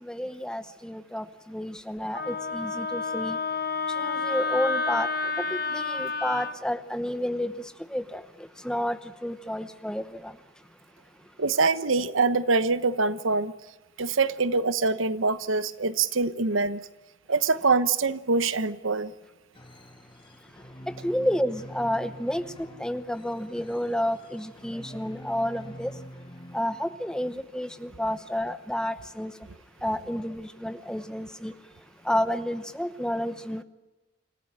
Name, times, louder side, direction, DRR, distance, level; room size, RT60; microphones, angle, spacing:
voice 1, 0.0-3.4 4.0-5.1 5.4-10.3 20.9-25.9 26.5-29.3 29.8-31.5 32.0-33.6, equal, 5° left, 0.9 m, -30 dB
Wind instrument woodwind instrument, 2.1-6.5, left 4 dB, 50° left, 1.3 m, -29 dB
voice 2, 11.4-13.5 14.0-16.8 17.3-19.1, right 4 dB, 85° right, 1.1 m, -24 dB
sound 1, 19.5-27.2, equal, 25° left, 1.5 m, -46 dB
26.5 x 15.0 x 10.0 m
head